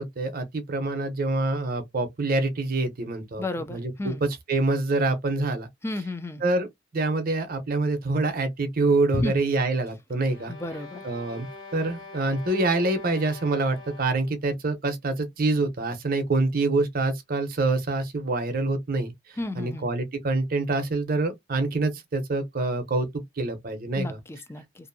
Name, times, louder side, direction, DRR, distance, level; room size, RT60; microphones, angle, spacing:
voice 1, 0.0-3.4 3.7-5.7 6.4-6.7 6.9-10.5 11.0-19.1 19.6-23.1 23.4-24.2, right 2 dB, 50° right, 0.7 m, -26 dB
voice 2, 3.4-4.2 5.8-6.4 9.1-9.4 10.5-11.1 19.4-19.9 24.0-24.9, left 2 dB, 15° left, 0.4 m, -32 dB
sound 1, 10.2-14.4, left 3 dB, 80° left, 0.7 m, -44 dB
2.6 x 2.5 x 2.5 m
head